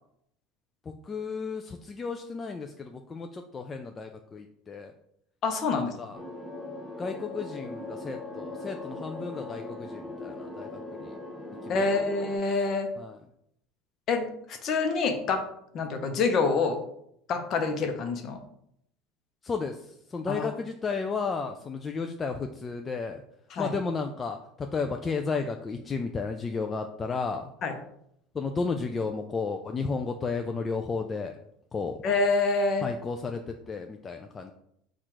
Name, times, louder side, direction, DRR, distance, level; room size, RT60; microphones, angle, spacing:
voice 1, 0.8-4.9 5.7-6.2 7.0-11.2 11.6-11.8 13.0-13.2 19.4-23.2 23.6-27.5 28.3-31.4 31.7-32.0 32.8-34.5, left 4 dB, 25° left, 5 dB, 0.3 m, -33 dB
voice 2, 5.4-5.9 11.7-12.9 14.1-15.4 15.7-16.8 17.3-18.4 20.3-20.5 23.5-23.7 27.6-27.7 32.0-32.9, left 4 dB, 50° left, 6 dB, 0.8 m, -26 dB
sound 1, 6.1-12.4, left 2 dB, 5° left, 0.8 m, -40 dB
4.3 x 2.4 x 4.7 m, 0.74 s
supercardioid pair, 100°, 0 cm